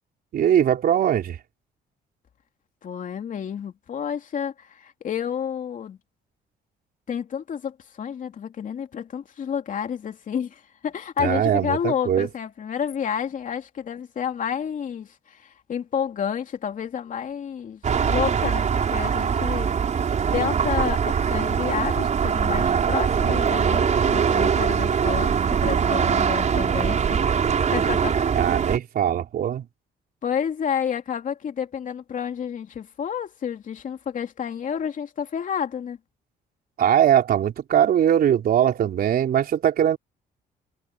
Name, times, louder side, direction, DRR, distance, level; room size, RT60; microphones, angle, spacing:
voice 1, 0.3-1.4 11.2-12.3 28.4-29.7 36.8-40.0, right 10 dB, 60° right, 4.1 m, -21 dB
voice 2, 2.8-6.0 7.1-19.7 20.3-27.2 27.7-28.5 30.2-36.0, left 8 dB, 50° left, 2.9 m, -30 dB
sound 1, 17.8-28.8, right 7 dB, 45° right, 5.1 m, -22 dB
cardioid pair, 110°, 17 cm